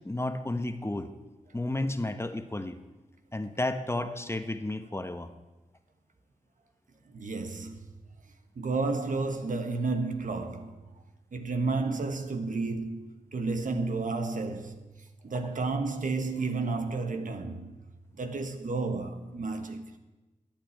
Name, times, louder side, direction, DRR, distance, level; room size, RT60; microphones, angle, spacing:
voice 1, 0.0-1.1 1.5-2.8 3.3-5.3, left 2 dB, 20° left, 1.1 m, -32 dB
voice 2, 7.1-7.9 8.5-10.8 11.3-14.8 15.2-17.8 18.2-19.9, right 3 dB, 75° right, 1.4 m, -31 dB
13.0 x 8.8 x 9.2 m
cardioid pair, 60°, 14 cm